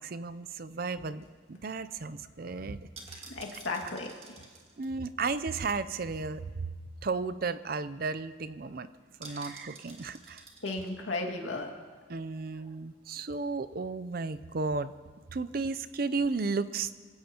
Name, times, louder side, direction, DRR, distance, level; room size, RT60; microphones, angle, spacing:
voice 1, 0.0-2.8 3.1-3.3 4.8-6.7 7.0-8.9 9.2-10.4 12.1-14.9 15.3-16.9, right 4 dB, 50° right, 14 dB, 0.5 m, -34 dB
sound 1, 0.9-6.1 6.4-6.5 6.8-7.1 7.4-7.5 7.8-8.1 9.2-10.9 11.3-11.4, right 3 dB, 30° right, 2.0 m, -52 dB
voice 2, 3.2-4.5 9.3-9.5 10.6-11.7, left 2 dB, 80° left, 1 dB, 2.1 m, -35 dB
26.0 x 16.5 x 2.9 m, 1.5 s
head